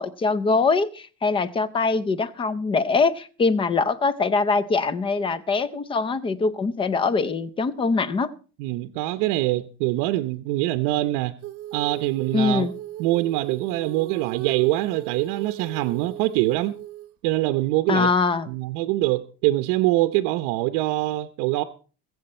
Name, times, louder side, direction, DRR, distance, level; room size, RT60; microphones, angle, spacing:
voice 1, 0.0-8.3 12.3-12.7 17.9-18.5, left 4 dB, 15° left, 0.6 m, -23 dB
voice 2, 8.6-11.3 11.7-12.7 13.0-16.7 17.2-18.1 18.5-21.6, right 17 dB, 85° right, 0.8 m, -24 dB
Female singing, 11.4-17.1, right 15 dB, 45° right, 0.9 m, -37 dB
23.0 x 7.8 x 4.3 m
cardioid pair, 175°, 31 cm